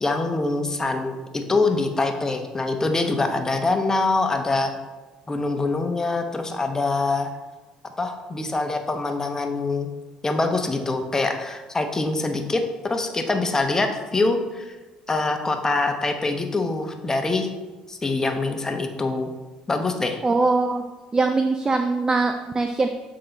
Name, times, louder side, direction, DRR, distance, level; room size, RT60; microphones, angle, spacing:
voice 1, 0.0-4.7 5.3-7.3 8.0-9.9 10.2-14.7 15.1-17.5 17.9-19.3 19.7-20.2, left 3 dB, 20° left, 5 dB, 0.8 m, -24 dB
voice 2, 20.2-20.8 21.1-22.9, right 3 dB, 25° right, 6 dB, 0.4 m, -22 dB
7.6 x 3.8 x 4.0 m, 1.2 s
supercardioid pair, 85°, 3 cm